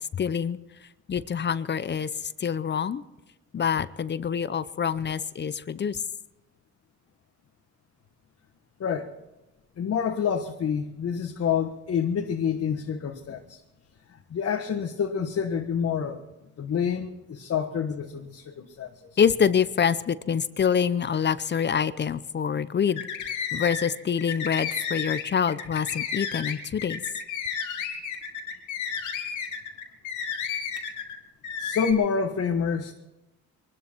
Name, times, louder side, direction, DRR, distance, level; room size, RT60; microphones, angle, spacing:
voice 1, 0.1-0.6 1.1-3.0 3.5-6.0 19.2-23.1 23.5-27.0, left 7 dB, 35° left, 15 dB, 0.7 m, -26 dB
voice 2, 8.8-9.1 9.8-13.6 14.3-16.2 16.6-19.2 31.6-32.9, left 7 dB, 55° left, 2 dB, 1.4 m, -28 dB
sound 1, 22.9-23.9 24.2-31.1 31.4-31.9, left 7 dB, 90° left, 2.5 m, -32 dB
23.5 x 13.0 x 4.5 m, 1.0 s
cardioid pair, 90°, 30 cm